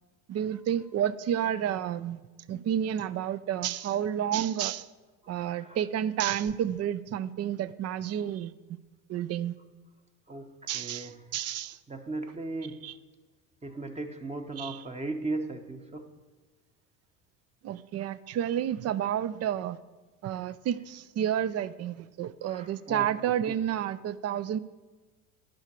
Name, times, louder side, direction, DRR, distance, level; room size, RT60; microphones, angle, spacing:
voice 1, 0.3-2.2 2.5-4.9 5.3-8.5 9.1-9.5 10.7-11.8 12.8-12.9 14.6-14.8 17.6-19.8 20.2-24.6, right 10 dB, 35° right, 16 dB, 0.5 m, -30 dB
voice 2, 5.4-5.8 10.3-11.1 11.9-12.8 13.6-16.1 22.4-23.1, right 2 dB, 15° right, 5 dB, 0.9 m, -37 dB
11.5 x 5.7 x 7.5 m, 1.3 s
supercardioid pair, 95°, 42 cm